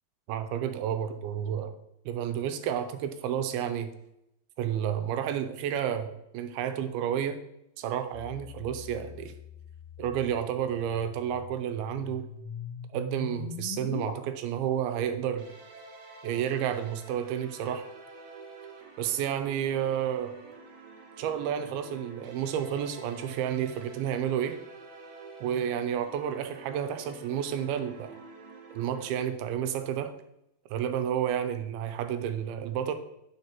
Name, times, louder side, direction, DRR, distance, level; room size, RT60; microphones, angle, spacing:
voice 1, 0.3-1.7 2.1-3.9 4.6-7.4 7.8-9.3 10.0-12.3 12.9-15.5 16.2-17.9 19.0-20.4 21.2-24.6 25.4-28.2 28.7-30.1 30.7-32.9, right 9 dB, 85° right, 8 dB, 2.6 m, -31 dB
sound 1, 8.1-14.1, left 7 dB, 85° left, 1.5 m, -42 dB
sound 2, 15.4-29.1, right 4 dB, 65° right, 2.0 m, -48 dB
9.6 x 6.8 x 3.0 m, 0.82 s
omnidirectional pair, 4.3 m